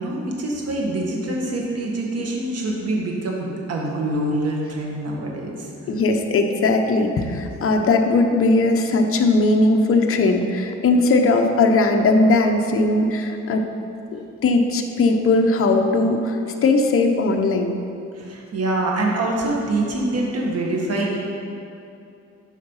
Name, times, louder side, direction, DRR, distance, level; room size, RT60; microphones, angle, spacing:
voice 1, 0.0-5.7 18.1-21.2, right 2 dB, 55° right, -1 dB, 1.8 m, -25 dB
voice 2, 5.9-13.6 14.1-17.7, left 2 dB, 45° left, 3 dB, 0.9 m, -19 dB
12.0 x 4.9 x 5.7 m, 2.6 s
cardioid pair, 115°, 30 cm